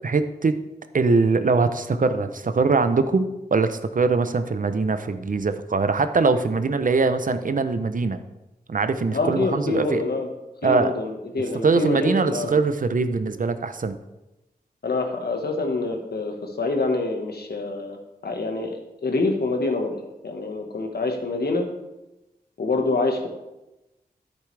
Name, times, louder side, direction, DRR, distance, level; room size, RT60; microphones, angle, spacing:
voice 1, 0.0-0.5 0.9-8.2 8.7-10.0 10.6-10.9 11.6-13.9, right 4 dB, 55° right, 10 dB, 0.7 m, -22 dB
voice 2, 9.1-10.3 10.6-12.6 14.8-18.0 18.2-20.0 20.2-21.7 22.6-23.3, left 3 dB, 75° left, 3 dB, 1.4 m, -26 dB
10.5 x 8.3 x 3.3 m, 0.98 s
wide cardioid pair, 60°, 17 cm